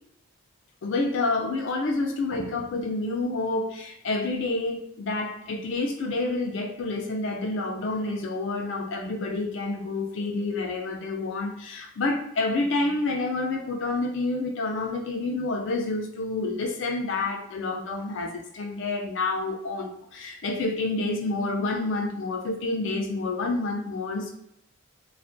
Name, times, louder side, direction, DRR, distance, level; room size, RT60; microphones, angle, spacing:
voice 1, 0.8-24.3, left 2 dB, 65° left, 2 dB, 0.4 m, -28 dB
2.4 x 2.1 x 2.5 m, 0.74 s
head